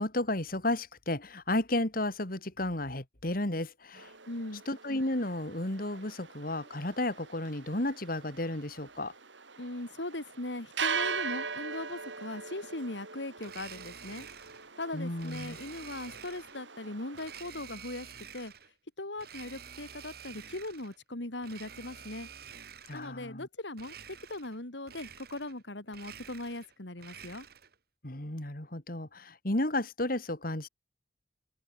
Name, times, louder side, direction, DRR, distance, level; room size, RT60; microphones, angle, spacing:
voice 1, 0.0-4.1 4.7-9.1 14.9-15.6 22.9-23.5 28.0-30.7, left 1 dB, 50° left, 3.0 m, -33 dB
sound 1, 3.9-17.4, right 5 dB, 90° right, 5.2 m, -41 dB
voice 2, 4.3-4.6 9.6-14.3 14.8-18.1 18.3-18.5 19.0-22.3 22.9-23.9 24.3-27.5, left 2 dB, 80° left, 3.3 m, -39 dB
Domestic sounds home sounds, 13.4-14.7 15.2-16.6 17.1-18.7 19.2-21.0 21.4-23.1 23.7-24.6 24.8-25.6 25.9-27.8, right 8 dB, 55° right, 2.7 m, -49 dB
open air
head